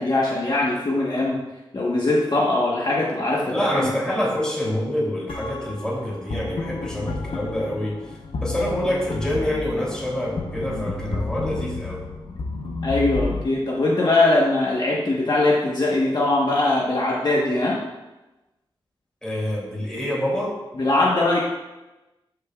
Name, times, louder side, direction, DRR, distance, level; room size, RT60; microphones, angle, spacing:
voice 1, 0.0-1.4 1.7-4.2 12.8-17.8 20.7-21.4, left 2 dB, 50° left, -4 dB, 1.3 m, -21 dB
voice 2, 3.5-8.0 8.4-12.0 19.2-20.6, left 1 dB, 10° left, -5 dB, 3.1 m, -26 dB
sound 1, 5.3-13.4, left 3 dB, 75° left, 0.9 m, -31 dB
13.0 x 6.9 x 2.4 m, 1.0 s
wide cardioid pair, 105°, 9 cm